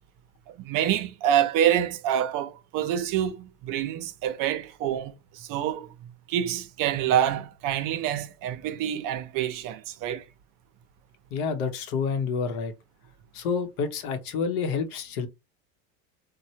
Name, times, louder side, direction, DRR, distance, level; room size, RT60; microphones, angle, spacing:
voice 1, 0.6-5.9 6.3-10.3, right 10 dB, 50° right, 0.6 m, -27 dB
voice 2, 11.3-12.7 13.3-15.3, left 5 dB, 75° left, 0.8 m, -28 dB
3.1 x 2.2 x 2.7 m
supercardioid pair, 105°, 44 cm